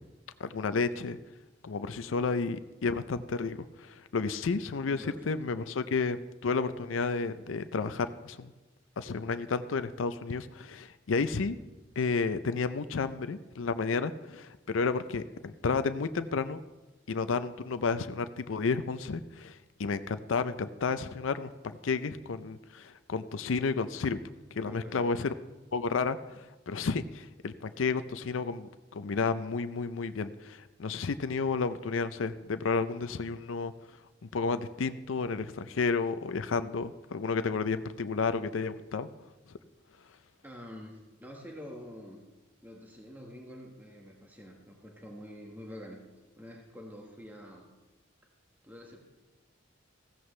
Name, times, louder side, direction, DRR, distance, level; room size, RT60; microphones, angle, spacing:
voice 1, 0.4-1.2 1.6-8.5 9.0-11.6 12.0-16.6 17.1-24.2 24.5-25.3 25.7-33.7 34.2-39.1, left 4 dB, 90° left, 12 dB, 0.5 m, -31 dB
voice 2, 4.9-5.5 24.6-25.2 40.4-42.3 42.6-46.1 46.4-47.7 48.6-49.0, equal, 10° right, 0 dB, 1.5 m, -47 dB
15.5 x 14.0 x 3.2 m, 1.1 s
head